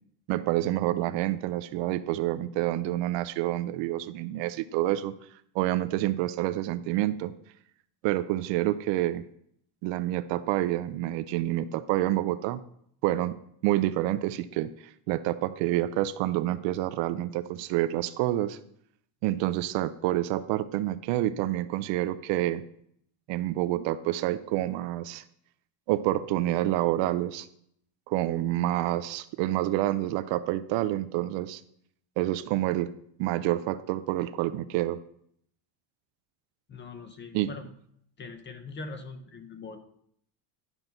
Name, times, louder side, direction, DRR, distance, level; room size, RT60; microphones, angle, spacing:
voice 1, 0.3-5.1 5.5-7.3 8.0-9.2 9.8-12.6 13.0-13.4 13.6-14.7 15.1-18.6 19.2-22.6 23.3-25.2 25.9-27.5 28.1-31.6 32.2-32.9 33.2-35.0 37.3-37.5, right 14 dB, 65° right, 14 dB, 0.5 m, -28 dB
voice 2, 36.7-37.7 38.2-39.8, left 4 dB, 25° left, 8 dB, 0.6 m, -42 dB
11.0 x 5.8 x 3.9 m, 0.68 s
cardioid pair, 165°, 49 cm